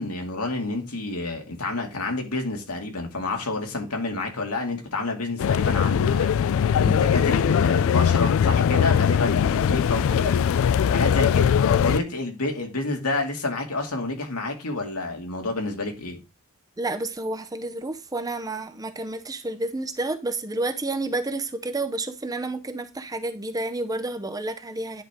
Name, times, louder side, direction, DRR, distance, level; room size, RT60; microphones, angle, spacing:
voice 1, 0.0-6.3 6.8-10.4 10.9-16.2, left 2 dB, 85° left, 2.4 m, -29 dB
sound 1, 5.4-12.0, left 8 dB, 60° left, 0.3 m, -21 dB
voice 2, 16.8-25.0, right 2 dB, 15° right, 0.7 m, -30 dB
10.0 x 4.6 x 3.6 m
head